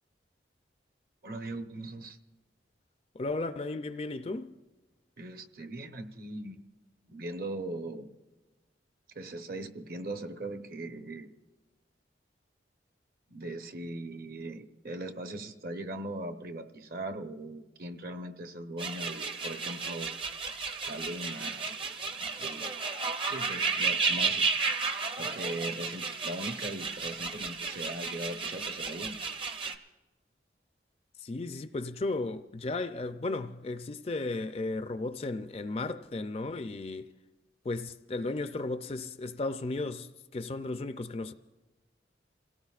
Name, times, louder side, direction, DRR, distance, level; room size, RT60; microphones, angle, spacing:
voice 1, 1.2-2.2 5.2-6.6 7.1-8.1 9.1-11.3 13.3-20.1 20.8-21.7 22.4-22.7 23.2-24.5 25.2-29.2, right 1 dB, 55° right, 0.9 m, -39 dB
voice 2, 3.1-4.5 31.2-37.1 37.6-41.3, left 2 dB, 35° left, 0.4 m, -35 dB
sound 1, 18.8-29.8, right 4 dB, 30° right, 0.6 m, -33 dB
27.0 x 17.5 x 2.4 m
head